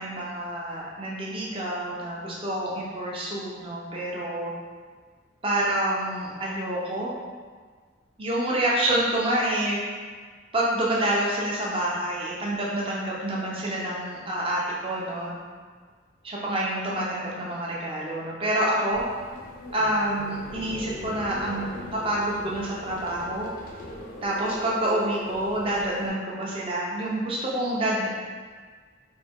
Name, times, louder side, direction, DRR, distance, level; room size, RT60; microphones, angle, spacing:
voice 1, 0.0-4.5 5.4-7.1 8.2-9.8 10.5-15.4 16.2-19.0 19.7-21.7 22.0-23.5 24.2-28.1, right 1 dB, 30° right, -5 dB, 0.7 m, -27 dB
sound 1, 18.9-26.1, left 2 dB, 45° left, 0.5 m, -41 dB
4.1 x 2.2 x 3.5 m, 1.5 s
head